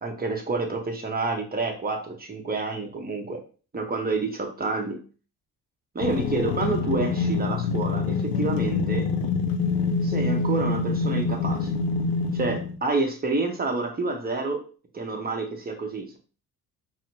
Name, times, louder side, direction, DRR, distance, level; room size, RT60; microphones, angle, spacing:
voice 1, 0.0-3.4 3.7-5.0 5.9-9.1 10.0-11.8 12.3-14.6 14.9-16.2, right 3 dB, 20° right, 3 dB, 1.0 m, -28 dB
sound 1, 6.0-12.8, left 4 dB, 75° left, 0.6 m, -26 dB
4.1 x 2.1 x 2.7 m, 0.37 s
hypercardioid pair, 55°, 42 cm